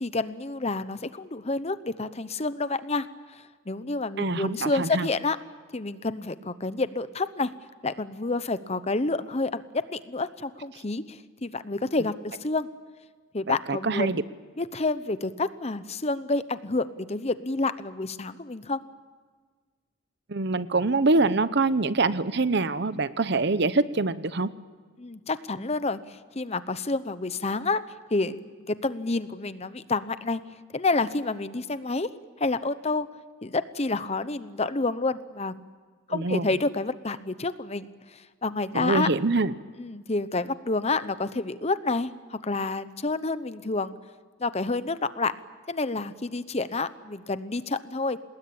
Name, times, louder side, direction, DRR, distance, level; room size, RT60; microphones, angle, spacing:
voice 1, 0.0-5.4 5.7-7.5 7.8-12.7 13.3-14.3 14.6-18.8 25.0-27.8 28.1-30.4 30.7-32.1 32.4-33.1 33.4-35.6 36.1-39.1 39.8-43.9 44.4-45.3 45.7-48.2, left 3 dB, 35° left, 13 dB, 0.9 m, -29 dB
voice 2, 4.2-5.1 13.5-14.2 20.3-24.5 36.1-36.5 38.7-39.5, right 3 dB, 60° right, 14 dB, 0.9 m, -25 dB
27.0 x 20.0 x 8.8 m, 1.5 s
head